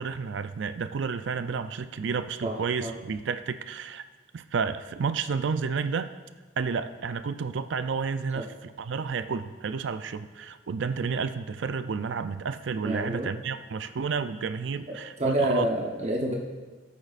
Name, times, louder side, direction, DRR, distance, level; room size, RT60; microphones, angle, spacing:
voice 1, 0.0-4.0 4.3-6.1 6.6-15.7, right 5 dB, 90° right, 11 dB, 0.4 m, -31 dB
voice 2, 2.4-2.9 8.3-8.5 12.8-13.3 14.9-16.3, right 1 dB, 35° right, -1 dB, 0.9 m, -28 dB
14.0 x 8.3 x 2.5 m, 1.3 s
head